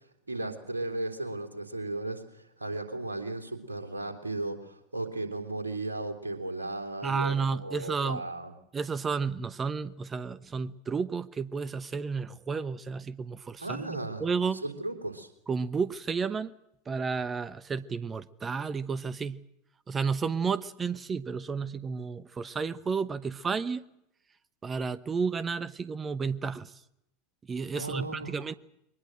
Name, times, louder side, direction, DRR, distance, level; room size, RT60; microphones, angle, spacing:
voice 1, 0.3-8.5 13.6-14.3 14.6-15.3 27.7-28.4, right 2 dB, 80° right, 3.3 m, -35 dB
voice 2, 7.0-8.2 8.7-14.6 15.5-16.5 16.9-19.4 19.9-23.8 24.6-26.7 27.5-28.6, right 5 dB, 20° right, 1.0 m, -32 dB
22.5 x 20.0 x 7.7 m
figure-of-eight pair, 85°, 0 cm